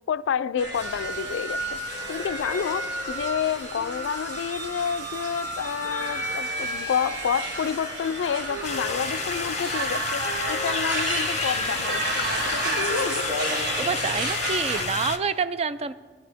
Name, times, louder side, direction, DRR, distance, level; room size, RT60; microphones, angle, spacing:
voice 1, 0.0-1.8 2.1-13.3, left 7 dB, 80° left, 0.3 m, -29 dB
sound 1, 0.6-14.9, right 1 dB, 50° right, 2.1 m, -30 dB
sound 2, 0.7-9.1, right 2 dB, 70° right, 1.7 m, -44 dB
sound 3, 8.6-15.2, left 7 dB, 35° left, 0.6 m, -32 dB
voice 2, 13.8-15.9, right 5 dB, 35° right, 0.3 m, -27 dB
19.0 x 11.0 x 3.5 m
head